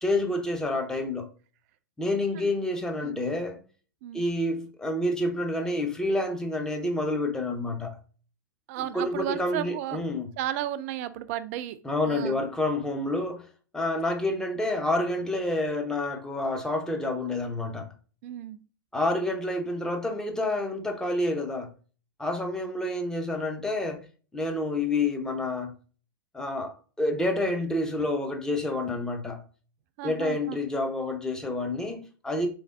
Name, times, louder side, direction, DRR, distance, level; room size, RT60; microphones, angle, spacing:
voice 1, 0.0-1.3 2.0-3.6 4.1-8.0 8.9-10.3 11.8-13.5 13.7-17.9 18.9-21.7 22.2-24.0 24.3-25.8 26.3-29.4 30.0-32.5, left 2 dB, 5° left, 0.7 m, -28 dB
voice 2, 8.7-10.0 10.4-11.8 12.1-12.4 18.2-18.6 30.0-30.6, right 12 dB, 45° right, 0.4 m, -34 dB
3.7 x 3.4 x 2.4 m
figure-of-eight pair, 100°, 11 cm